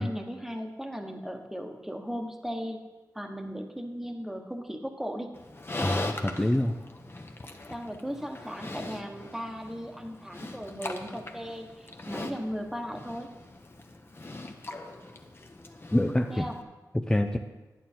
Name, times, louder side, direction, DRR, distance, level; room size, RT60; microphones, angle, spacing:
voice 1, 0.0-2.8 3.1-5.3 7.7-13.3 16.3-16.6, equal, 5° right, 4 dB, 1.2 m, -37 dB
Livestock farm animals working animals, 5.3-16.6, left 2 dB, 35° left, 1.0 m, -40 dB
voice 2, 5.8-6.7 15.9-16.4 16.9-17.4, left 1 dB, 10° left, 5 dB, 0.5 m, -26 dB
11.0 x 9.3 x 4.4 m, 1.1 s
wide cardioid pair, 80°, 7 cm